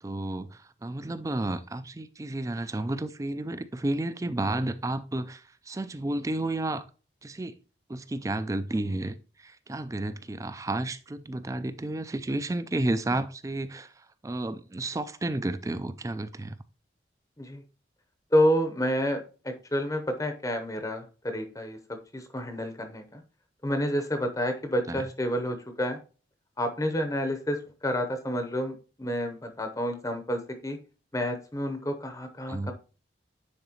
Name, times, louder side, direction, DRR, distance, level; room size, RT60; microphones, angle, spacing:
voice 1, 0.0-6.8 7.2-7.6 7.9-16.6 24.9-25.1 32.5-32.7, right 2 dB, 15° right, 0.3 m, -32 dB
voice 2, 18.3-21.8 22.1-23.2 23.6-26.0 26.6-28.7 29.0-30.8 31.1-32.7, equal, 20° left, 0.7 m, -29 dB
9.8 x 4.0 x 2.8 m
head